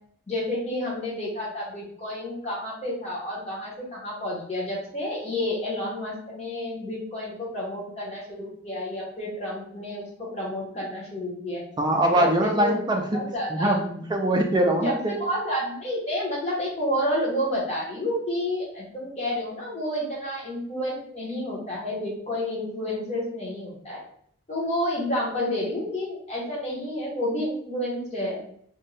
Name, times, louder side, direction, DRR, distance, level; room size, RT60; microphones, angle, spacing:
voice 1, 0.3-11.6 12.2-12.7 13.1-13.8 14.6-24.0 24.5-28.4, left 1 dB, 30° left, -4 dB, 0.9 m, -30 dB
voice 2, 11.8-15.2, right 1 dB, 20° right, 2 dB, 0.3 m, -23 dB
2.5 x 2.1 x 3.1 m, 0.64 s
head